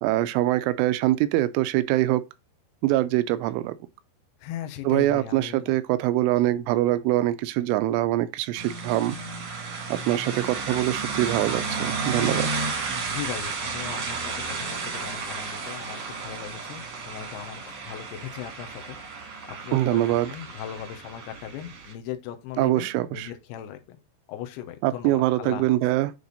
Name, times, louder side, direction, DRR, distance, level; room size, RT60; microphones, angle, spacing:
voice 1, 0.0-2.2 2.8-3.8 4.8-9.2 9.9-12.5 19.7-20.3 22.6-23.3 24.8-26.1, right 15 dB, 85° right, 2.9 m, -24 dB
voice 2, 4.4-5.8 13.1-19.3 19.6-24.0 24.3-25.7, left 11 dB, 80° left, 2.3 m, -38 dB
sound 1, 8.6-21.9, right 4 dB, 60° right, 1.7 m, -32 dB
8.5 x 3.4 x 3.9 m
omnidirectional pair, 5.7 m